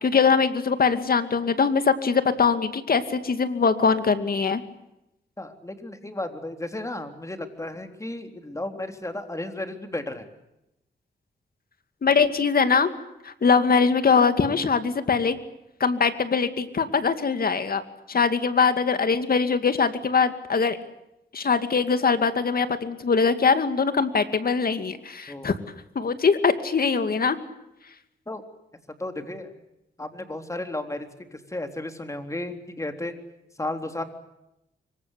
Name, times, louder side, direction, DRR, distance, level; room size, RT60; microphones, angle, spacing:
voice 1, 0.0-4.6 12.0-12.9 13.2-15.4 15.8-17.8 18.1-20.8 21.3-25.6 25.9-27.4, left 5 dB, 55° left, 10 dB, 2.4 m, -22 dB
voice 2, 5.4-10.3 25.3-25.5 28.3-28.4 29.0-29.5 30.0-33.1 33.6-34.0, left 1 dB, 15° left, 6 dB, 3.6 m, -33 dB
25.5 x 23.5 x 8.3 m, 0.87 s
cardioid pair, 85°, 18 cm